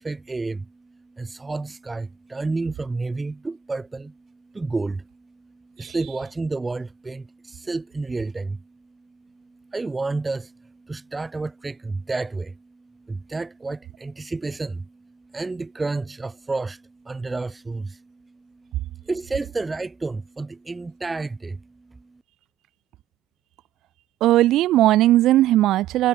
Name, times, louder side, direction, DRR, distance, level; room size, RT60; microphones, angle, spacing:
voice 1, 0.0-4.1 4.5-5.1 5.8-8.6 9.4-22.0, right 3 dB, 20° right, 5.7 m, -31 dB
voice 2, 24.2-26.1, right 14 dB, 80° right, 0.5 m, -17 dB
cardioid pair, 120°, 0 cm